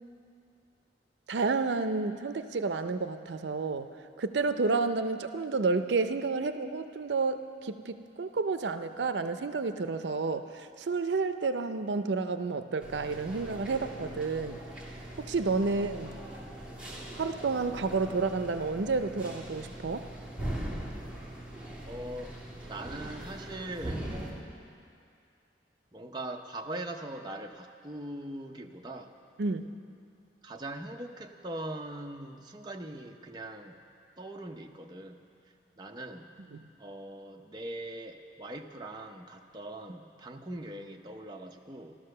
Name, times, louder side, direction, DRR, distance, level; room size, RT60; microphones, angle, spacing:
voice 1, 1.3-3.9 4.2-14.6 15.2-16.1 17.2-20.1 29.4-29.7 36.5-36.6, right 4 dB, 80° right, 9 dB, 0.5 m, -30 dB
sound 1, 12.8-24.3, right 1 dB, 5° right, 2.2 m, -41 dB
voice 2, 21.8-22.4 22.6-24.1 25.9-29.1 30.4-33.8 34.2-35.3 35.8-36.3 36.8-42.0, right 1 dB, 25° right, 2 dB, 0.7 m, -41 dB
14.0 x 12.5 x 6.6 m, 2.4 s
head